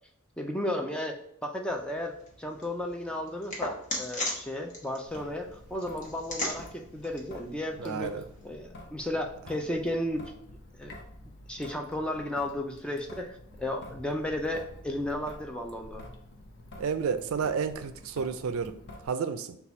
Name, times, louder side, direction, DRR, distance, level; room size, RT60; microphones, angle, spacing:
voice 1, 0.4-8.1 8.4-10.3 10.8-10.9 11.5-16.1, left 1 dB, 5° left, 0.3 m, -34 dB
sound 1, 1.7-8.5, left 2 dB, 35° left, 1.0 m, -39 dB
Traffic noise roadway noise / Drip / Trickle dribble, 5.1-19.1, left 1 dB, 50° left, 0.6 m, -49 dB
voice 2, 7.8-8.2 16.8-18.7 19.0-19.6, right 6 dB, 75° right, 0.4 m, -31 dB
4.1 x 2.3 x 4.2 m
head